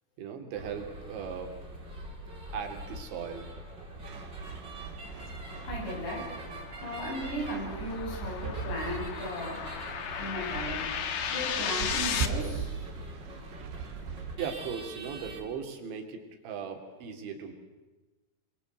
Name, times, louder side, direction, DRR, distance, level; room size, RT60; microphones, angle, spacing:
voice 1, 0.2-1.6 2.5-3.5 14.4-17.5, right 6 dB, 90° right, 4 dB, 5.2 m, -38 dB
sound 1, 0.5-15.4, right 1 dB, 25° right, 4.8 m, -44 dB
sound 2, 4.0-14.4, right 6 dB, 75° right, 3.7 m, -40 dB
sound 3, 5.4-12.3, left 8 dB, 60° left, 2.0 m, -36 dB
voice 2, 5.6-6.5 6.8-9.6 10.2-10.9 11.2-12.7, equal, 80° left, -1 dB, 10.5 m, -36 dB
28.0 x 23.0 x 8.1 m, 1.1 s
omnidirectional pair, 5.1 m